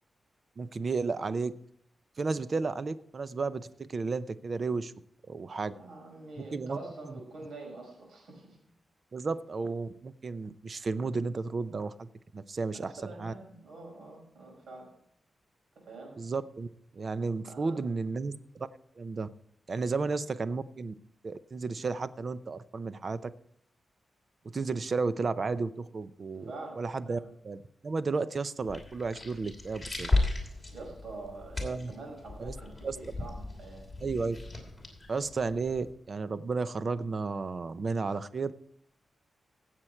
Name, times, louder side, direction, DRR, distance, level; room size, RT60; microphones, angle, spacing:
voice 1, 0.6-1.5 2.2-4.9 5.3-5.7 6.5-6.8 7.0-7.2 9.1-12.1 12.3-12.9 13.2-13.3 16.2-16.7 16.9-18.7 19.0-19.3 19.7-20.9 21.2-23.3 24.5-27.2 27.4-30.1 31.6-31.9 32.4-32.5 32.8-33.0 34.0-34.4 35.1-38.5, right 4 dB, 45° right, 14 dB, 0.6 m, -33 dB
voice 2, 5.7-8.6 12.7-14.9 15.8-16.1 17.5-18.0 26.5-26.8 27.1-27.2 30.7-33.9, right 2 dB, 75° right, 0 dB, 5.9 m, -45 dB
sound 1, 28.6-35.9, left 2 dB, 15° left, 2.9 m, -35 dB
16.5 x 7.6 x 4.4 m, 0.66 s
wide cardioid pair, 125°, 0 cm